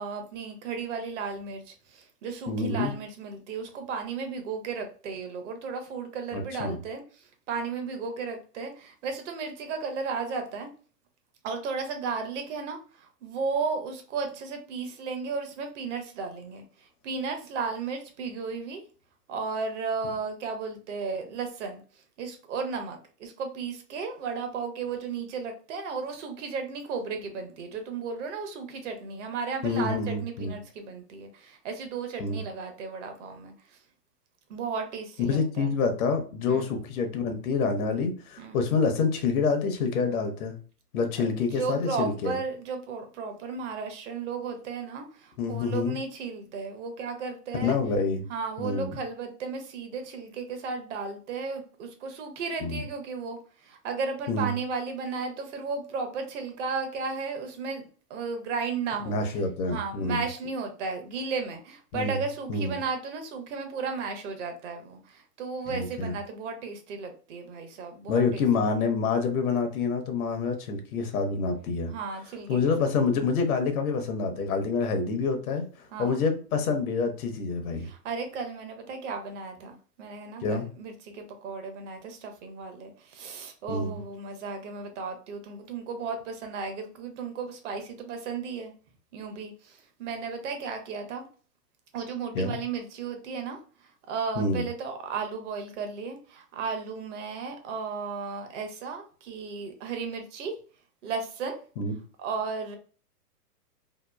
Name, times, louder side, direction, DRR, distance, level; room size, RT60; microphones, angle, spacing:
voice 1, 0.0-10.7 11.4-18.8 19.3-21.8 22.2-33.8 34.5-35.7 36.5-36.7 38.4-38.6 41.2-47.8 48.3-59.2 59.7-68.4 71.9-72.9 75.9-76.2 77.8-88.7 89.1-91.3 91.9-100.5 101.0-101.6 102.2-102.8, right 5 dB, 50° right, 5 dB, 0.7 m, -34 dB
voice 2, 2.5-2.9 6.3-6.8 29.6-30.5 32.2-32.4 35.2-40.5 40.9-42.4 45.4-46.0 47.5-48.3 48.6-48.9 52.6-52.8 54.3-54.5 59.1-60.2 61.9-62.2 62.5-62.7 65.7-66.2 68.1-71.9 72.5-77.9 80.4-80.7 83.7-84.0 92.3-92.6 94.4-94.6 101.8-101.9, left 4 dB, 60° left, 6 dB, 0.8 m, -27 dB
2.9 x 2.2 x 2.2 m, 0.39 s
hypercardioid pair, 125°, 48 cm